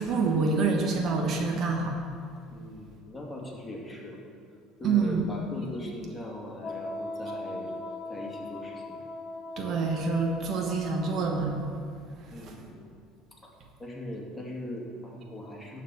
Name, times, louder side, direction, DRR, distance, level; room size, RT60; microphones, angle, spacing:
voice 1, 0.0-2.0 4.8-5.3 9.6-11.6, right 4 dB, 50° right, 2 dB, 1.3 m, -26 dB
voice 2, 2.5-4.2 4.8-7.7 8.1-9.0 12.3-12.8 13.4-13.5 13.8-15.8, left 1 dB, 15° left, -2 dB, 2.2 m, -40 dB
Wind instrument woodwind instrument, 6.6-11.3, left 2 dB, 45° left, 1.0 m, -39 dB
11.5 x 4.1 x 7.7 m, 2.3 s
supercardioid pair, 100°, 0 cm